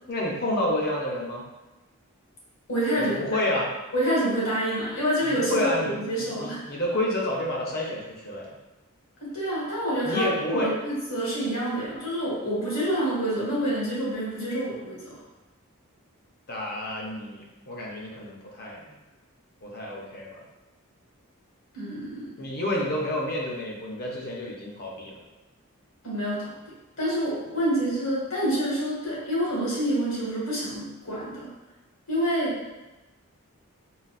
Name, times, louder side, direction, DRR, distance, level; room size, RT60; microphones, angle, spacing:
voice 1, 0.1-1.5 3.0-3.7 5.2-8.6 10.0-10.7 16.5-19.0 19.6-20.4 22.4-25.1, left 1 dB, 45° left, -2 dB, 0.6 m, -29 dB
voice 2, 2.7-3.2 3.9-6.7 9.2-15.2 21.7-22.3 26.0-26.5 27.0-31.5 32.1-32.6, right 1 dB, 60° left, -7 dB, 1.4 m, -27 dB
3.9 x 2.2 x 2.3 m, 1.1 s
head